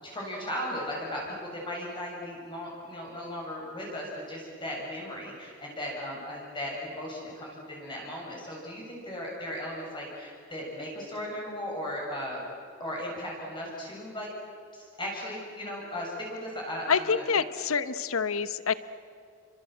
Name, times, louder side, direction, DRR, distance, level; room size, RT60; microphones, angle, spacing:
voice 1, 0.0-12.4 12.8-14.3 14.7-17.2, equal, 20° left, -3 dB, 7.3 m, -37 dB
voice 2, 16.9-18.7, left 6 dB, 80° left, 13 dB, 1.0 m, -27 dB
29.5 x 25.5 x 8.0 m, 2.5 s
head